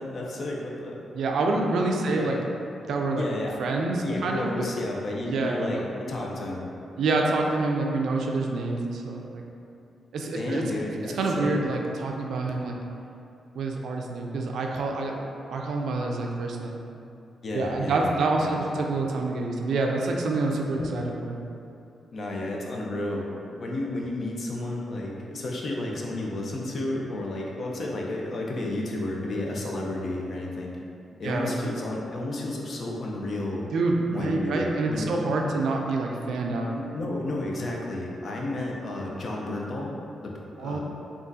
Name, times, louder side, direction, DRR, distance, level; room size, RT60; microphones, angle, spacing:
voice 1, 0.0-1.0 2.0-2.4 3.1-3.6 4.0-6.7 10.3-11.6 17.4-18.8 20.8-20.9 22.1-30.8 31.2-33.6 34.1-35.1 36.7-39.9 40.2-40.8, left 2 dB, 55° left, -2 dB, 0.5 m, -32 dB
voice 2, 1.1-2.4 2.9-3.2 3.6-4.7 5.2-5.8 7.0-9.4 10.1-10.6 11.0-12.7 13.5-15.2 15.5-16.8 17.5-21.4 31.2-31.6 33.7-36.7 40.6-40.8, right 3 dB, 75° right, 1 dB, 0.3 m, -27 dB
3.6 x 2.4 x 2.6 m, 2.7 s
cardioid pair, 70°, 0 cm